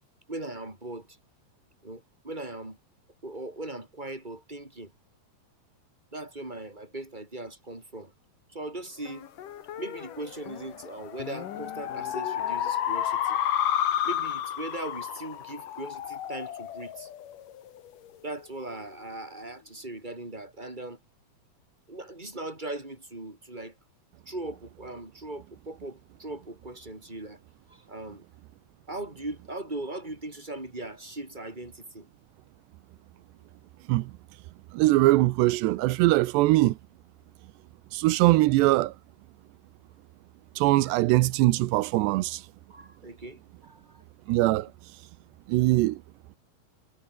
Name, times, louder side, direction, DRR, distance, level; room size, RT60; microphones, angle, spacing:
voice 1, 0.3-1.2 1.8-2.8 3.2-4.9 6.1-8.1 8.5-9.3 9.8-13.4 14.0-17.1 18.2-21.0 21.9-23.7 24.3-27.4 27.7-28.2 28.9-32.1 40.8-41.0 42.7-44.0 44.5-44.7, right 2 dB, 10° right, 6.4 m, -39 dB
sound 1, 9.1-17.9, left 10 dB, 60° left, 3.0 m, -31 dB
voice 2, 34.7-36.8 37.9-38.9 40.6-42.4 44.3-44.7 45.5-46.0, right 18 dB, 90° right, 3.0 m, -22 dB
omnidirectional pair, 4.8 m